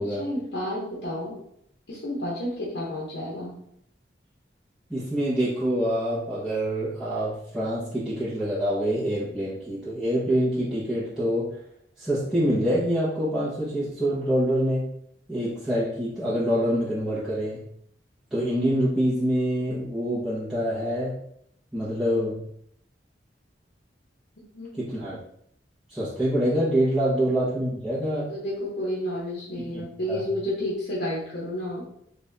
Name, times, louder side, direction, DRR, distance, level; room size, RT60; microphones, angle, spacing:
voice 1, 0.0-1.4 1.9-3.6 24.5-24.7 28.1-31.9, left 1 dB, 65° left, -6 dB, 1.0 m, -31 dB
voice 2, 4.9-11.5 12.0-14.9 15.3-17.6 18.3-21.2 21.7-22.4 24.8-25.2 25.9-28.3 29.6-30.2, equal, 5° right, -12 dB, 1.0 m, -26 dB
4.0 x 2.6 x 3.4 m, 0.70 s
head